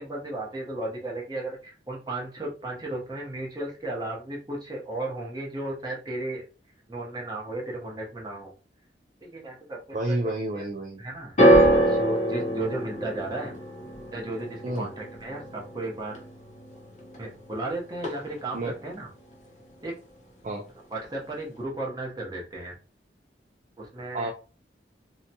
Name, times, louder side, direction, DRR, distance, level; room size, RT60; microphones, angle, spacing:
voice 1, 0.0-6.4 6.9-8.5 9.2-10.2 10.5-10.7 11.0-13.6 14.1-16.2 17.2-19.1 19.8-20.0 20.9-22.8 23.8-24.3, right 2 dB, 20° right, -2 dB, 0.8 m, -35 dB
voice 2, 9.9-11.0 14.6-14.9 18.5-18.7 20.4-20.7 24.1-24.3, right 2 dB, 40° right, 1 dB, 0.3 m, -29 dB
sound 1, 11.4-17.7 17.9-18.6 19.3-19.4, right 1 dB, 40° left, 0.7 m, -25 dB
2.7 x 2.2 x 2.7 m, 0.36 s
head